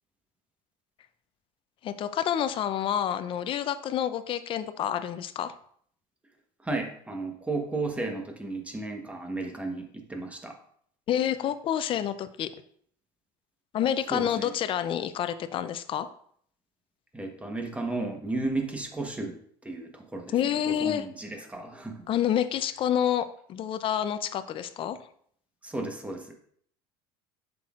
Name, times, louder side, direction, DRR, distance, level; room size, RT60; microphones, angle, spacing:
voice 1, 1.8-5.5 11.1-12.5 13.7-16.1 20.3-21.0 22.1-25.0, left 10 dB, 40° left, 12 dB, 0.5 m, -28 dB
voice 2, 6.6-10.6 14.1-14.5 17.1-22.1 25.6-26.3, right 2 dB, 10° right, 3 dB, 1.1 m, -34 dB
7.4 x 6.1 x 2.5 m, 0.62 s
supercardioid pair, 110°, 13 cm